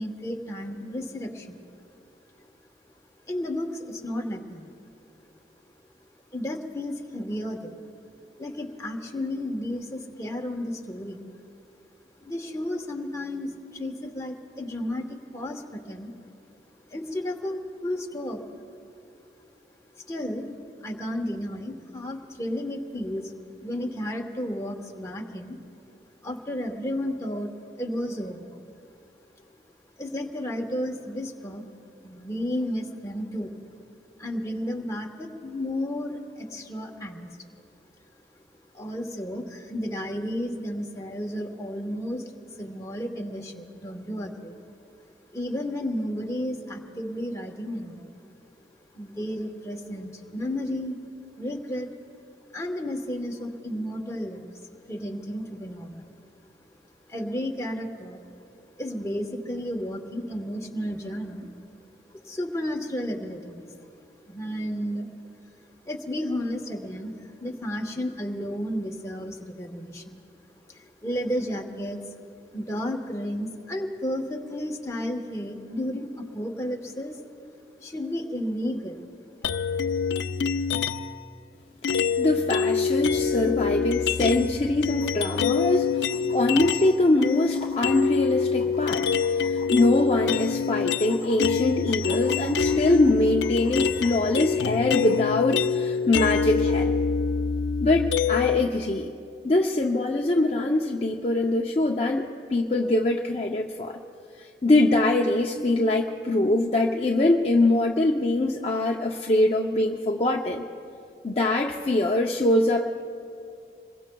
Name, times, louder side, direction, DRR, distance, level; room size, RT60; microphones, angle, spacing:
voice 1, 0.0-1.6 3.3-4.7 6.3-7.8 8.4-11.2 12.2-16.1 16.9-18.7 19.9-25.6 26.2-28.6 30.0-31.6 32.0-33.5 34.2-37.3 38.7-44.6 45.3-48.1 48.9-51.0 51.4-51.9 52.5-54.5 54.9-56.1 57.1-58.2 58.8-61.5 62.1-63.7 64.2-65.4 65.8-70.2 70.7-72.0 72.5-77.2 77.8-79.0, left 1 dB, 15° left, 1 dB, 1.1 m, -32 dB
sound 1, 79.4-81.2 81.8-86.9 87.2-98.6, left 6 dB, 85° left, 0.5 m, -26 dB
voice 2, 82.2-89.1 89.4-96.9 97.8-99.1 99.4-104.0 104.4-110.6 111.2-113.0, left 2 dB, 35° left, 0 dB, 0.6 m, -23 dB
sound 2, 84.9-95.2 96.9-97.0, left 3 dB, 20° right, 3.4 m, -46 dB
26.5 x 22.0 x 2.3 m, 2.5 s
head